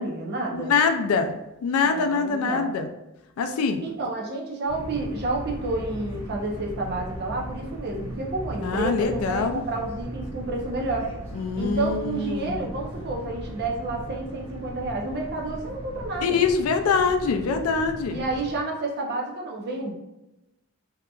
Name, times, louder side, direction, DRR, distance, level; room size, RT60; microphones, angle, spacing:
voice 1, 0.0-0.7 1.9-2.7 3.8-11.1 11.6-16.4 18.1-19.9, right 2 dB, 50° right, 0 dB, 0.5 m, -30 dB
voice 2, 0.5-1.3 1.6-2.9 3.4-3.8 8.6-9.6 11.3-12.7 16.2-18.2, left 5 dB, 75° left, 6 dB, 0.3 m, -24 dB
sound 1, 4.7-18.5, right 1 dB, 10° right, 1.0 m, -37 dB
2.7 x 2.4 x 2.3 m, 0.93 s
head